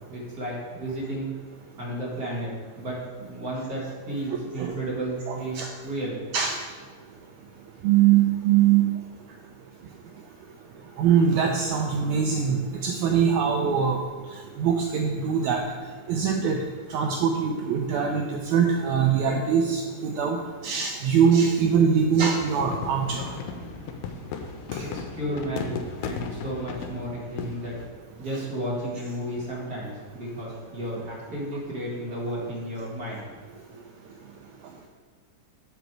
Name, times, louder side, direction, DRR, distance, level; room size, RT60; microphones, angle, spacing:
voice 1, 0.1-1.3 1.8-2.5 2.8-3.0 3.2-6.2 24.8-27.7 28.2-33.4, right 1 dB, 35° right, -6 dB, 1.9 m, -33 dB
voice 2, 5.3-5.7 6.3-6.5 7.8-8.9 11.0-14.0 14.6-15.6 16.1-16.6 16.9-20.4 20.6-23.3, right 7 dB, 85° right, 2 dB, 1.7 m, -22 dB
sound 1, 22.4-27.9, left 6 dB, 80° left, 2.1 m, -36 dB
8.0 x 5.1 x 4.6 m, 1.5 s
omnidirectional pair, 3.9 m